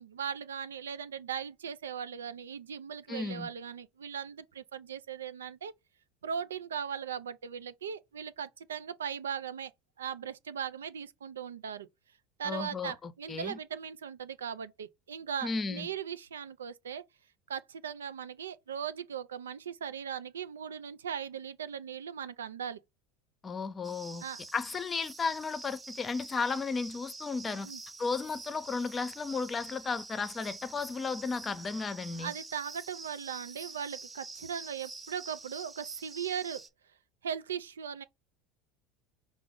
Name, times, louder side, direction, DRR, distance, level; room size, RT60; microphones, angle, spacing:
voice 1, 0.0-5.7 6.2-9.7 10.0-11.9 12.4-17.0 17.5-22.8 24.2-24.4 27.6-27.8 32.2-36.6 37.2-38.0, right 8 dB, 90° right, 0.3 m, -38 dB
voice 2, 3.1-3.5 12.4-13.6 15.4-15.9 23.4-24.2 24.5-27.7 28.0-32.3, left 4 dB, 30° left, 0.6 m, -34 dB
sound 1, 23.8-36.7, right 3 dB, 15° right, 0.7 m, -47 dB
4.9 x 2.0 x 3.6 m
hypercardioid pair, 80°, 0 cm